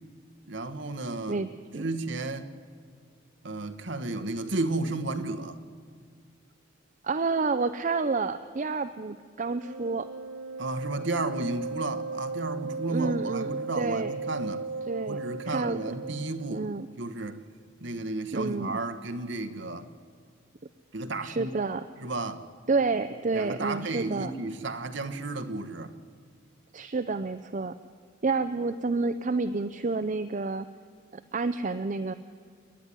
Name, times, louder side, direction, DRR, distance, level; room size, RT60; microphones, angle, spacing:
voice 1, 0.5-1.4 1.8-2.5 3.4-5.6 10.6-14.7 15.0-16.7 17.0-17.4 17.8-19.9 20.9-21.5 22.0-22.4 23.3-25.9, right 2 dB, 60° right, 1.3 m, -33 dB
voice 2, 1.3-1.8 7.0-10.1 12.9-13.5 13.8-14.1 14.9-15.2 15.5-15.8 16.5-16.9 18.3-18.7 21.2-21.8 22.7-24.3 26.7-27.8 28.2-30.7 31.1-32.1, right 3 dB, 40° right, 0.5 m, -29 dB
Wind instrument woodwind instrument, 9.5-16.5, right 3 dB, 80° right, 0.6 m, -36 dB
29.0 x 11.0 x 10.0 m
head